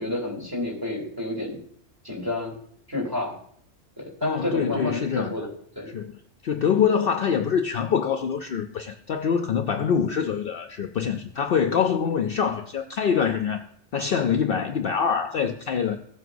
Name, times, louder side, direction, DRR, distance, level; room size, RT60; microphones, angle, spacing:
voice 1, 0.0-1.6 2.0-2.6 2.9-3.3 4.0-5.5 5.7-5.9, left 2 dB, 20° right, 3.0 m, -29 dB
voice 2, 4.2-5.4 5.9-6.1 6.4-13.6 13.9-16.0, left 7 dB, 60° left, 0.7 m, -25 dB
15.5 x 7.8 x 2.6 m
omnidirectional pair, 1.2 m